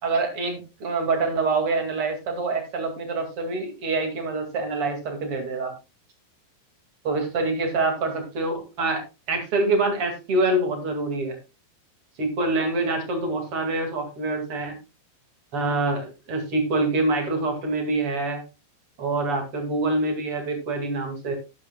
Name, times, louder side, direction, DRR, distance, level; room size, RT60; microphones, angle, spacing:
voice 1, 0.0-5.7 7.0-11.4 12.2-14.8 15.5-18.4 19.0-21.3, right 3 dB, 45° right, 4 dB, 1.9 m, -26 dB
12.0 x 11.5 x 2.3 m, 0.27 s
omnidirectional pair, 6.0 m